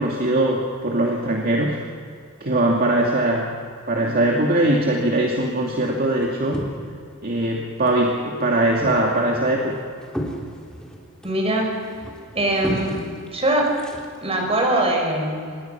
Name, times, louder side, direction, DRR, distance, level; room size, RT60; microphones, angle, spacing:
voice 1, 0.0-1.8 2.4-3.6 3.9-6.6 7.2-9.8, right 1 dB, 45° right, -1 dB, 2.5 m, -21 dB
sound 1, 5.5-7.2 7.5-8.1 8.4-14.4, equal, 5° left, 3.7 m, -35 dB
voice 2, 11.2-11.7 12.3-13.0 13.3-13.7 14.2-15.6, right 1 dB, 30° right, 1 dB, 6.1 m, -22 dB
27.0 x 22.0 x 6.0 m, 2.3 s
head